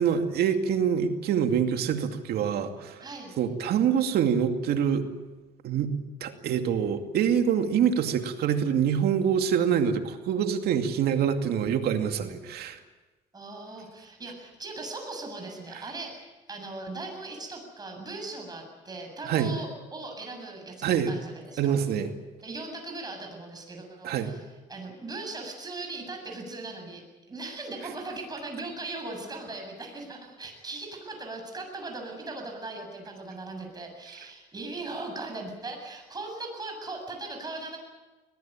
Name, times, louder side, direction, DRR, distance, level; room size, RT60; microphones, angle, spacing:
voice 1, 0.0-3.0 3.4-5.0 5.6-5.9 6.2-12.8 19.2-19.5 20.8-21.1 21.6-22.1 24.0-24.3, right 8 dB, 70° right, 6 dB, 2.4 m, -25 dB
voice 2, 3.0-3.4 13.3-21.8 22.4-37.8, right 2 dB, 25° right, 3 dB, 7.7 m, -39 dB
22.5 x 19.5 x 8.9 m, 1.2 s
cardioid pair, 110°, 17 cm